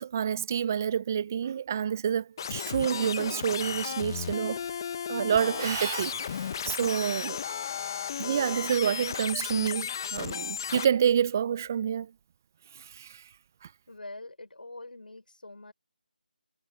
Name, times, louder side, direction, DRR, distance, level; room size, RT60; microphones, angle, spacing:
voice 1, 0.0-4.6 5.1-7.4 8.2-12.1 12.7-13.2, right 8 dB, 20° right, 0.3 m, -28 dB
sound 1, 2.4-10.8, left 7 dB, 25° left, 0.7 m, -34 dB
voice 2, 13.9-15.7, left 2 dB, 75° left, 3.7 m, -44 dB
figure-of-eight pair, 165°, 5 cm